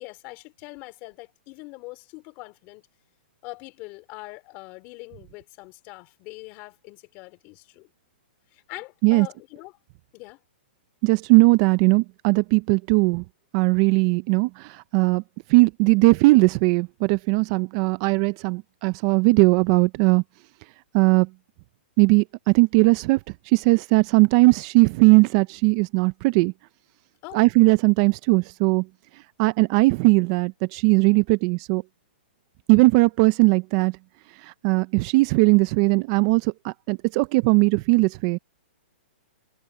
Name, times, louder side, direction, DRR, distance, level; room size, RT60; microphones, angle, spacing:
voice 1, 0.0-2.9 3.4-7.9 8.5-9.7 10.1-10.4 27.2-27.4, left 24 dB, 30° left, 3.5 m, -42 dB
voice 2, 11.0-13.2 13.5-15.2 15.5-20.2 20.9-21.3 22.0-23.2 23.5-26.5 27.3-28.9 29.4-31.8 32.7-34.0 34.4-38.4, right 26 dB, 30° right, 0.5 m, -19 dB
hypercardioid pair, 160°, 6 cm